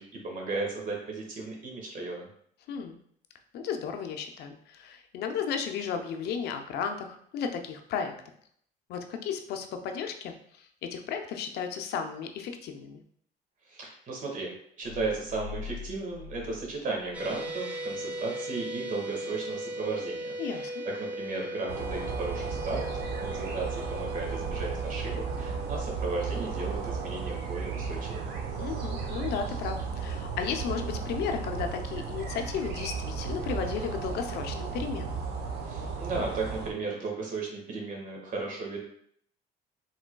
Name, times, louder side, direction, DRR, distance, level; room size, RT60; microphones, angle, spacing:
voice 1, 0.0-2.3 13.7-14.5 14.8-20.7 21.0-28.3 35.6-38.8, right 3 dB, 50° right, 0 dB, 1.5 m, -35 dB
voice 2, 3.5-8.2 8.9-13.0 20.4-20.8 28.6-35.2, left 7 dB, 75° left, 5 dB, 0.6 m, -34 dB
sound 1, 14.8-17.5, left 7 dB, 35° left, 1.2 m, -43 dB
sound 2, 17.1-29.5, right 1 dB, 10° right, 0.6 m, -39 dB
sound 3, 21.7-36.7, right 5 dB, 75° right, 0.9 m, -34 dB
4.9 x 3.9 x 2.2 m, 0.65 s
cardioid pair, 110°, 17 cm